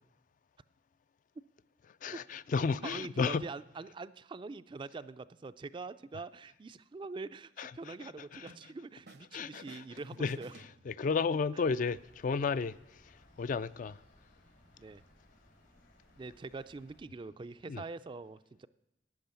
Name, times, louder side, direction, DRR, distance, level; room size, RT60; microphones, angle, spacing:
voice 1, 2.0-3.4 7.6-8.5 9.3-9.8 10.2-10.4 10.9-12.8 13.4-14.0 17.7-17.8, left 5 dB, 50° left, 0.3 m, -33 dB
voice 2, 2.5-10.5 11.5-11.6 14.8-15.0 16.1-18.7, right 3 dB, 30° right, 0.3 m, -44 dB
sound 1, 8.5-9.3 9.5-11.3, right 2 dB, 70° right, 0.8 m, -56 dB
sound 2, 11.8-17.0, left 1 dB, 85° left, 4.4 m, -63 dB
12.0 x 8.6 x 6.9 m
head